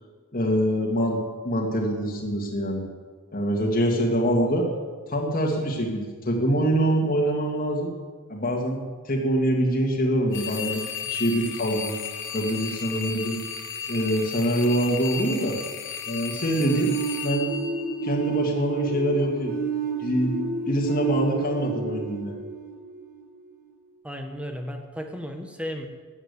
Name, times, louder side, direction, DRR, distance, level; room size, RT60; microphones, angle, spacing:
voice 1, 0.3-1.2 1.4-2.8 3.3-4.7 5.1-7.9 8.3-8.8 9.0-10.8 11.1-12.0 12.3-13.4 13.9-15.6 16.1-16.9 17.2-17.5 18.0-19.5 20.0-20.4 20.7-22.4, equal, 40° left, -1 dB, 2.2 m, -24 dB
sound 1, 10.3-18.5, left 7 dB, 55° left, 1.3 m, -35 dB
sound 2, 16.6-23.4, right 6 dB, 45° right, 4.9 m, -30 dB
voice 2, 24.0-25.9, equal, 5° right, 5 dB, 1.2 m, -34 dB
14.0 x 9.7 x 8.3 m, 1.5 s
head